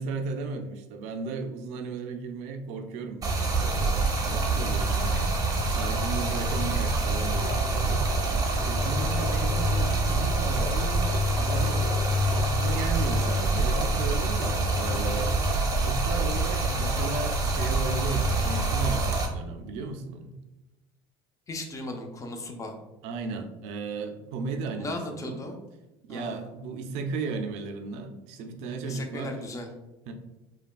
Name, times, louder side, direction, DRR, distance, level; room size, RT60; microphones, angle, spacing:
voice 1, 0.0-11.9 12.3-15.4 15.8-20.3 23.0-25.4 26.1-29.4 30.1-30.2, right 4 dB, 65° right, 6 dB, 0.4 m, -35 dB
Stream, 3.2-19.3, right 2 dB, 30° right, 0.7 m, -26 dB
sound 1, 3.5-18.9, left 2 dB, 55° left, 1.2 m, -41 dB
voice 2, 21.5-22.7 24.8-25.6 26.1-26.5 28.8-29.7, left 2 dB, 25° left, 3 dB, 0.6 m, -37 dB
3.4 x 2.3 x 2.3 m, 1.0 s
hypercardioid pair, 85°, 12 cm